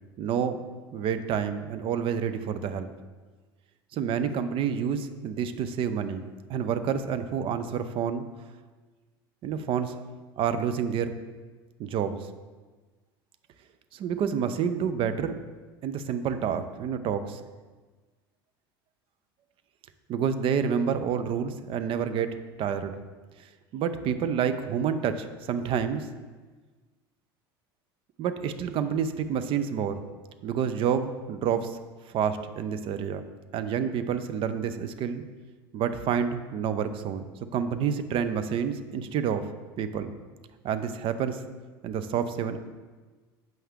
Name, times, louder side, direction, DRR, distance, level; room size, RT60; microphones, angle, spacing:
voice 1, 0.2-0.6 0.9-2.9 3.9-8.2 9.4-10.0 10.4-11.1 11.8-12.3 13.9-15.4 15.8-17.4 20.1-22.3 22.6-23.0 23.7-26.1 28.2-30.0 30.4-31.8 32.1-33.2 33.5-35.2 35.7-37.3 37.5-39.5 39.8-40.2 40.6-41.4 41.8-42.6, right 7 dB, 45° right, 10 dB, 0.6 m, -28 dB
7.5 x 5.5 x 3.6 m, 1.3 s
hypercardioid pair, 75°, 13 cm